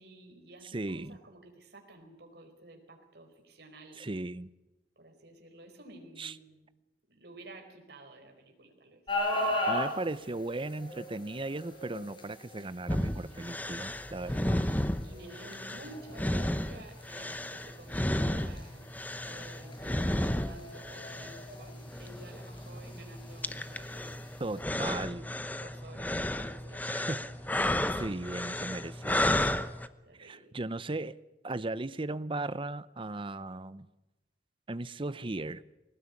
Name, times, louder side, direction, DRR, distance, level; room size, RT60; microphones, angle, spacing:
voice 1, 0.0-4.0 5.0-6.7 7.1-9.0 14.5-24.2 25.6-27.3 30.0-30.5, right 2 dB, 65° right, 3 dB, 4.7 m, -52 dB
voice 2, 0.6-1.2 4.0-4.5 6.2-6.3 9.7-14.5 24.4-25.3 26.9-27.2 27.9-29.5 30.2-31.2 31.4-33.9 34.7-35.6, right 2 dB, 30° right, 16 dB, 0.7 m, -37 dB
sound 1, 9.1-24.6, left 1 dB, 30° left, 5.7 m, -40 dB
sound 2, 12.9-29.9, left 1 dB, 10° left, 0.9 m, -33 dB
21.0 x 19.0 x 9.7 m, 1.0 s
head